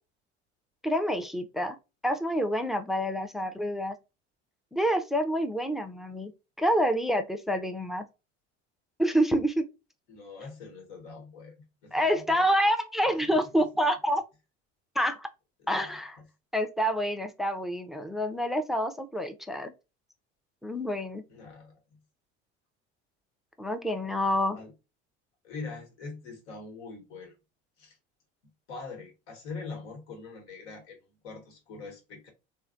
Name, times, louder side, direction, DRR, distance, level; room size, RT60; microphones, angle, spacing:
voice 1, 0.8-1.8 2.0-4.0 4.7-6.3 6.6-8.0 9.0-9.6 11.9-14.2 15.0-15.3 15.7-16.2 16.5-19.7 20.6-21.2 23.6-24.6, equal, ahead, 0.4 m, -27 dB
voice 2, 10.1-11.5 11.8-12.4 13.2-13.4 15.6-16.2 21.3-21.7 24.5-24.7 25.4-27.3 27.8-28.0 28.7-32.3, left 4 dB, 75° left, 1.3 m, -43 dB
3.1 x 2.2 x 2.5 m
hypercardioid pair, 70°, 34 cm